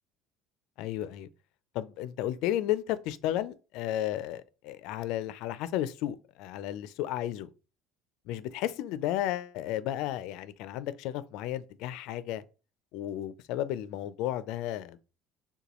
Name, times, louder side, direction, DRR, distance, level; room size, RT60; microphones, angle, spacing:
voice 1, 0.8-1.3 1.7-7.5 8.3-12.4 12.9-15.0, left 12 dB, 70° left, 0.4 m, -33 dB
6.7 x 2.2 x 3.0 m
cardioid pair, 120°, 0 cm